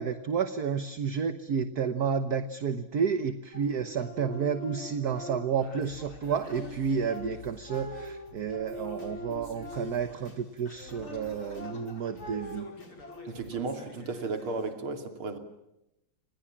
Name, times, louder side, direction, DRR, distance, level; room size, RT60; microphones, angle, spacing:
voice 1, 0.0-12.6, right 6 dB, 50° right, 1.5 m, -31 dB
sound 1, 3.5-5.8 6.2-10.2 10.7-13.2, left 1 dB, 30° left, 4.7 m, -43 dB
Singing, 5.6-14.7, left 2 dB, 80° left, 6.0 m, -50 dB
voice 2, 13.3-15.4, right 4 dB, 80° right, 3.6 m, -34 dB
29.0 x 26.5 x 7.5 m
omnidirectional pair, 2.3 m